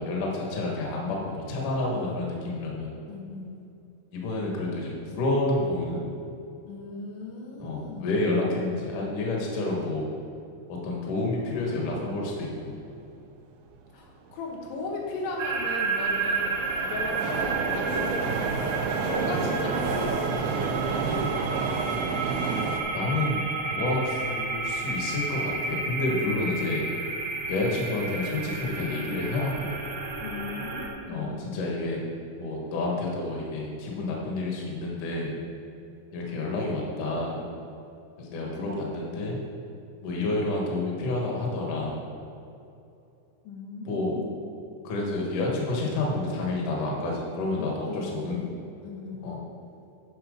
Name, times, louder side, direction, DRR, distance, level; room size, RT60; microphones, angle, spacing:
voice 1, 0.0-2.9 4.1-6.0 7.6-10.1 10.8-12.8 22.9-23.4 23.7-26.8 27.5-29.7 31.1-32.0 32.4-35.4 36.1-37.5 38.2-39.4 40.0-42.0 43.9-44.2 44.8-48.5 49.2-49.4, left 2 dB, 60° left, -2 dB, 2.3 m, -29 dB
voice 2, 3.1-3.6 6.7-8.4 13.9-18.5 19.1-21.0 30.2-31.5 43.5-44.3 47.6-49.4, left 3 dB, 90° left, -1 dB, 3.7 m, -37 dB
sound 1, 14.1-14.2 14.8-22.8, right 5 dB, 90° right, 2.1 m, -30 dB
sound 2, 15.4-30.9, right 4 dB, 70° right, 2.0 m, -32 dB
10.0 x 6.0 x 5.1 m, 2.7 s
omnidirectional pair, 5.2 m